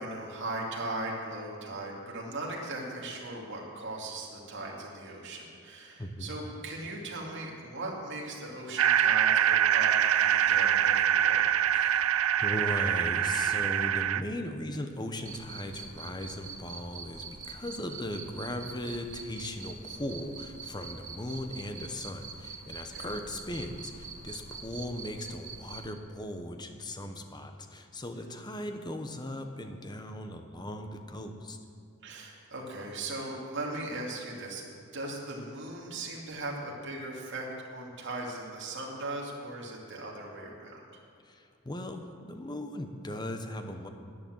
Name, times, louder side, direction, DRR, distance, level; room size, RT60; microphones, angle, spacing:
voice 1, 0.0-11.5 22.7-23.1 28.1-28.3 32.0-34.6 34.9-37.5 37.7-40.8, right 2 dB, 55° right, -2 dB, 2.5 m, -38 dB
voice 2, 6.0-6.3 11.7-31.6 41.2-43.9, left 1 dB, 20° left, 6 dB, 0.9 m, -38 dB
sound 1, 8.8-14.2, right 10 dB, 75° right, 0.4 m, -24 dB
Cricket, 15.2-25.9, right 4 dB, 40° right, 1.3 m, -44 dB
11.0 x 9.9 x 7.8 m, 2.5 s
head